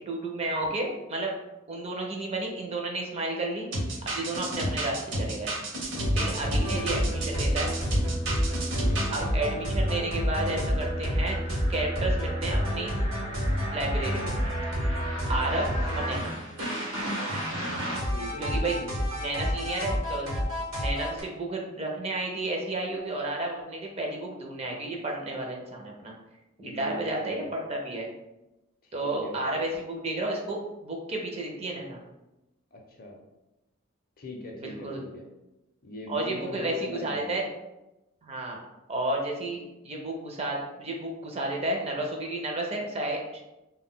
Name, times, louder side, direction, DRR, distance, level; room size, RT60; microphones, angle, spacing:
voice 1, 0.1-1.3 1.7-3.7 4.0-5.5 6.2-7.7 9.1-12.9 13.5-14.4 15.3-16.3 18.4-18.8 19.2-20.3 20.8-26.1 26.6-28.1 28.9-32.0 34.6-35.0 36.1-37.4 38.2-38.6 38.9-43.4, right 2 dB, 30° right, 0 dB, 0.4 m, -32 dB
sound 1, 3.7-9.2, right 1 dB, 60° right, 0.8 m, -31 dB
voice 2, 4.3-4.7 6.5-7.2 8.7-9.6 15.7-16.2 18.1-19.0 26.6-27.5 28.8-29.6 32.7-33.2 34.2-35.2 35.8-37.4, left 1 dB, 45° left, 1 dB, 0.5 m, -41 dB
sound 2, 6.0-21.2, equal, 85° right, 0.9 m, -29 dB
2.2 x 2.1 x 3.6 m, 0.97 s
head